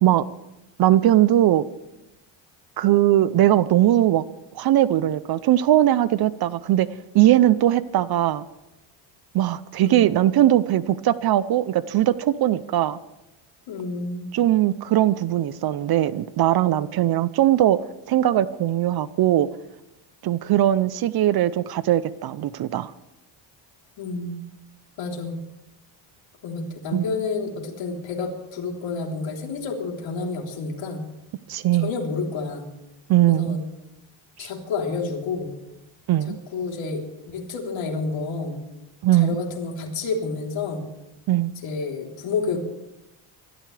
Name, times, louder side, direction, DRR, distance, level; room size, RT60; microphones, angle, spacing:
voice 1, 0.8-1.6 2.8-4.2 4.5-6.9 7.1-8.4 9.3-13.0 14.3-17.8 18.1-19.5 20.2-22.9 26.9-27.1 31.5-31.9 33.1-33.6 34.4-34.5 36.1-36.4 39.0-39.4 41.3-41.5, right 13 dB, 50° right, 17 dB, 0.6 m, -20 dB
voice 2, 13.7-14.3 24.0-24.4 25.0-25.4 26.4-31.1 31.8-32.7 33.3-33.6 34.4-35.5 36.5-37.0 37.3-38.6 39.1-40.9 41.6-42.6, left 4 dB, 65° left, 0 dB, 3.6 m, -29 dB
24.5 x 13.0 x 3.3 m, 0.93 s
cardioid pair, 130°, 48 cm